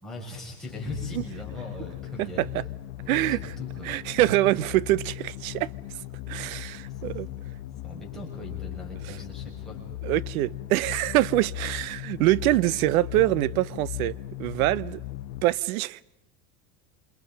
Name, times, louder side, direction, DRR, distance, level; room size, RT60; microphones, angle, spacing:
voice 1, 0.0-2.5 3.0-3.9 6.7-7.1 7.8-9.8, left 1 dB, ahead, 6.1 m, -40 dB
sound 1, 0.7-15.4, left 14 dB, 50° left, 0.9 m, -38 dB
voice 2, 2.2-2.6 3.1-3.4 3.8-5.7 6.3-7.3 9.1-9.2 10.0-15.0 15.4-16.0, right 16 dB, 90° right, 0.8 m, -25 dB
28.0 x 27.0 x 5.2 m
cardioid pair, 175°, 42 cm